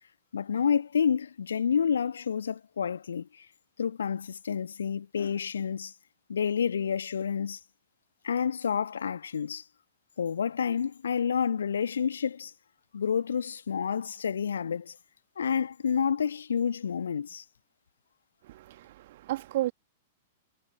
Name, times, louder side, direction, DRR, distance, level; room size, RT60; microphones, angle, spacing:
voice 1, 0.3-3.5 3.8-5.9 6.3-7.6 8.2-9.6 10.2-12.5 12.9-15.0 15.4-17.4, left 7 dB, 65° left, 1.7 m, -29 dB
voice 2, 18.4-19.7, right 15 dB, 50° right, 1.9 m, -33 dB
figure-of-eight pair, 100°, 0 cm